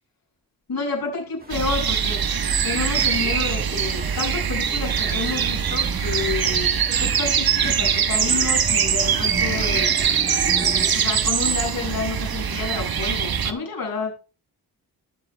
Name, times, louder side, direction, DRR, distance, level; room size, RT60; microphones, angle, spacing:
voice 1, 0.7-2.2 2.6-10.0 10.9-14.1, left 4 dB, 65° left, -1 dB, 6.9 m, -29 dB
sound 1, 1.4-10.9, right 2 dB, 25° right, 2.0 m, -37 dB
sound 2, 1.5-13.5, right 7 dB, 70° right, 1.2 m, -22 dB
19.5 x 7.4 x 2.2 m, 0.32 s
cardioid pair, 70°, 38 cm